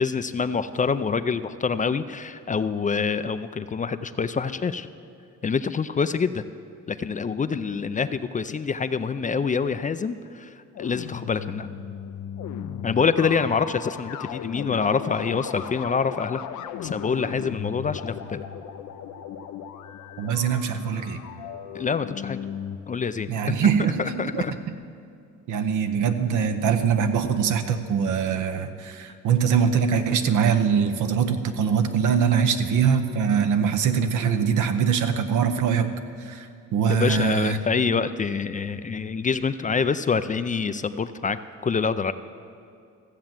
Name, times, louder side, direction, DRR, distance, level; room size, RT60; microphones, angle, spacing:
voice 1, 0.0-4.9 5.4-6.4 6.9-11.7 12.8-16.4 16.8-18.4 21.7-22.4 22.9-23.7 24.0-24.5 36.9-42.1, left 5 dB, 25° left, 12 dB, 0.4 m, -26 dB
sound 1, 10.7-22.8, left 9 dB, 80° left, 0.7 m, -36 dB
voice 2, 20.2-21.2 23.3-24.6 25.5-35.9 36.3-36.5 36.7-37.6, right 7 dB, 80° right, 8 dB, 1.0 m, -23 dB
15.0 x 7.7 x 7.4 m, 2.4 s
cardioid pair, 90°, 30 cm